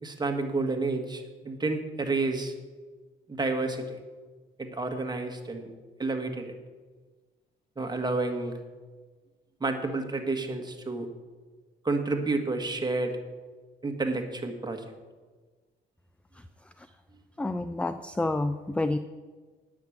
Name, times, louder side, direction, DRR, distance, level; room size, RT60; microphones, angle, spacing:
voice 1, 0.0-2.5 3.3-4.0 4.6-5.7 6.0-6.5 7.8-8.5 9.6-11.1 11.8-13.2 13.8-14.8, right 3 dB, 20° right, 5 dB, 1.6 m, -30 dB
voice 2, 17.4-19.0, left 2 dB, 5° left, 11 dB, 0.4 m, -28 dB
9.5 x 6.3 x 8.4 m, 1.4 s
cardioid pair, 90°, 20 cm